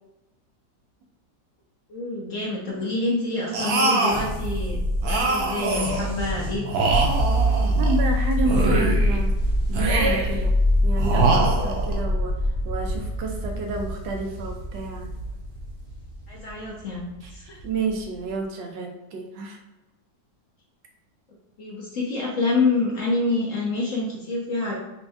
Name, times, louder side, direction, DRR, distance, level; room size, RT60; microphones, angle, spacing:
voice 1, 1.9-4.8 5.1-6.7 16.3-17.0 17.3-17.6 21.6-24.7, left 3 dB, 60° left, -4 dB, 0.9 m, -27 dB
sound 1, 3.5-4.3 5.0-6.1 6.6-8.0 8.4-9.2 9.7-10.4 11.0-12.0, right 3 dB, 65° right, 1.0 m, -24 dB
sound 2, 4.1-18.3, equal, 35° right, 0.7 m, -25 dB
voice 2, 7.8-9.3 9.7-10.5 10.8-12.3 12.6-15.1 17.2-17.3 17.6-19.6, right 3 dB, 90° right, 2 dB, 1.4 m, -30 dB
5.7 x 2.2 x 2.6 m, 0.98 s
omnidirectional pair, 2.0 m